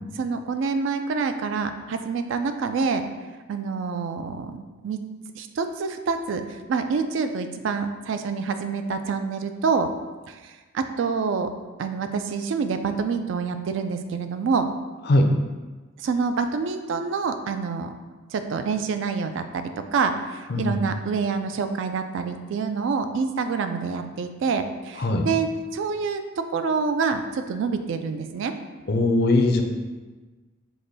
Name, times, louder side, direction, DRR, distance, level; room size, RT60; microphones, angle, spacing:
voice 1, 0.2-3.0 3.5-4.6 4.8-5.0 5.3-9.9 10.3-11.5 11.8-14.7 16.0-17.9 18.3-28.5, right 5 dB, 65° right, 8 dB, 0.3 m, -27 dB
voice 2, 20.5-20.9 25.0-25.3 28.9-29.6, left 2 dB, 50° left, 4 dB, 0.4 m, -20 dB
4.8 x 2.2 x 4.0 m, 1.3 s
head